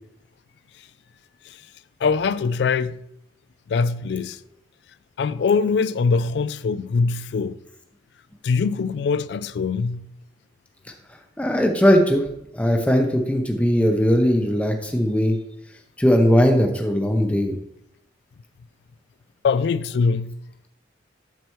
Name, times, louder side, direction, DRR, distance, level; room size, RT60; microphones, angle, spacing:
voice 1, 2.0-3.0 3.7-4.4 5.2-7.6 8.4-10.1 15.0-15.1 19.4-20.3, left 5 dB, 65° left, 0.3 m, -22 dB
voice 2, 11.4-12.2 12.5-15.4 16.0-17.5, equal, 5° left, 0.6 m, -19 dB
7.5 x 6.7 x 3.1 m
head